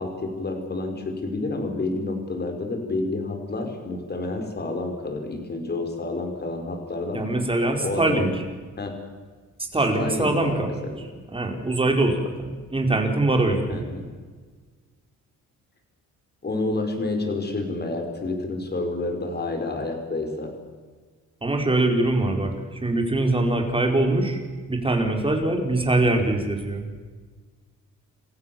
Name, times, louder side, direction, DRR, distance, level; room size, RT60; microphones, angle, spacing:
voice 1, 0.0-7.3 7.8-8.4 8.8-8.9 9.9-11.0 13.7-14.1 16.4-20.5, left 2 dB, 35° left, 5 dB, 5.6 m, -29 dB
voice 2, 7.1-8.3 9.6-10.9 11.3-13.8 21.4-22.5 22.8-24.4 24.7-26.9, right 2 dB, 20° right, 3 dB, 4.8 m, -23 dB
28.5 x 15.5 x 7.3 m, 1.4 s
cardioid pair, 90°, 30 cm